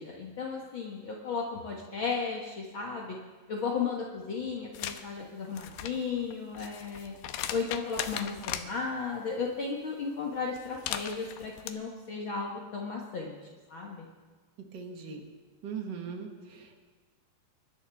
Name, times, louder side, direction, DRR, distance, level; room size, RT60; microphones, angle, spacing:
voice 1, 0.0-3.2 3.5-7.1 7.5-13.4 13.7-14.1, left 5 dB, 65° left, -2 dB, 1.2 m, -35 dB
sound 1, 4.7-5.0 5.5-8.7 10.6-11.7, left 11 dB, 80° left, 2.6 m, -38 dB
voice 2, 14.7-15.2 15.6-16.8, right 6 dB, 70° right, 3 dB, 1.0 m, -40 dB
27.5 x 13.0 x 3.6 m, 1.5 s
omnidirectional pair, 4.5 m